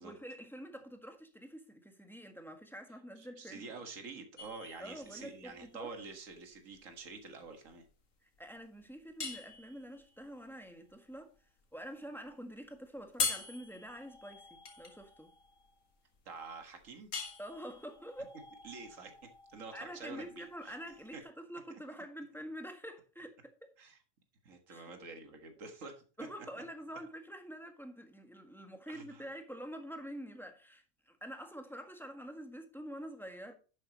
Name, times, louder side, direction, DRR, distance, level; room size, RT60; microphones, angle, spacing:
voice 1, 0.0-3.7 4.8-5.9 8.2-11.3 11.7-15.3 17.4-18.3 19.7-23.7 24.7-24.9 26.2-33.5, equal, ahead, 1.5 m, -47 dB
voice 2, 3.2-7.8 16.3-17.1 18.6-20.8 21.1-21.2 21.7-21.8 23.8-24.0 24.4-26.0 26.4-26.5 28.9-29.3, right 4 dB, 70° right, 2.0 m, -48 dB
sound 1, 4.4-21.2, left 5 dB, 70° left, 2.0 m, -44 dB
11.0 x 8.5 x 3.0 m
omnidirectional pair, 1.4 m